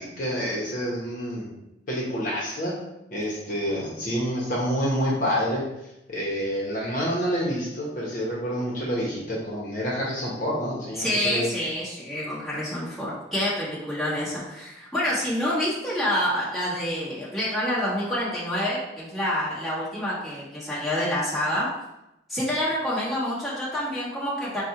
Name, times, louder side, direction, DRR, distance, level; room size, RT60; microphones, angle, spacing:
voice 1, 0.0-1.5 1.9-2.7 3.1-5.6 6.1-11.5, equal, 45° left, -5 dB, 0.9 m, -28 dB
voice 2, 11.0-21.7 22.3-24.6, equal, ahead, -10 dB, 1.5 m, -27 dB
4.2 x 2.3 x 4.4 m, 0.89 s
head